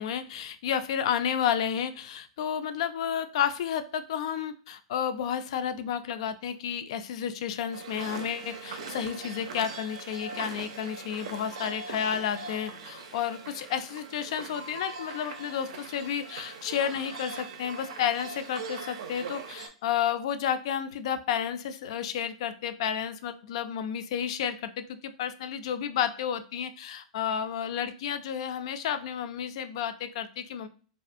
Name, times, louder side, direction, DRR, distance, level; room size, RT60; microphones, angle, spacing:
voice 1, 0.0-30.7, left 8 dB, 60° left, 10 dB, 0.3 m, -31 dB
sound 1, 7.7-19.7, right 4 dB, 70° right, 0.5 m, -41 dB
2.4 x 2.3 x 2.5 m, 0.40 s
hypercardioid pair, 105°, 3 cm